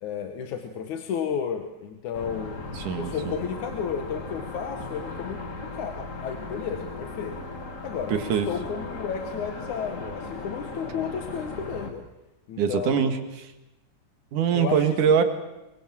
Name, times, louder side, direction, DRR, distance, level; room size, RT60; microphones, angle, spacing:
voice 1, 0.0-2.6 3.0-7.4 7.8-12.1 12.5-13.1 14.5-14.8, left 7 dB, 70° left, 6 dB, 2.8 m, -32 dB
sound 1, 2.1-11.9, left 3 dB, 25° left, 2.2 m, -37 dB
voice 2, 2.7-3.4 8.1-8.5 12.6-13.5 14.3-15.2, right 7 dB, 80° right, 8 dB, 3.4 m, -23 dB
26.5 x 23.0 x 7.6 m, 0.96 s
omnidirectional pair, 3.7 m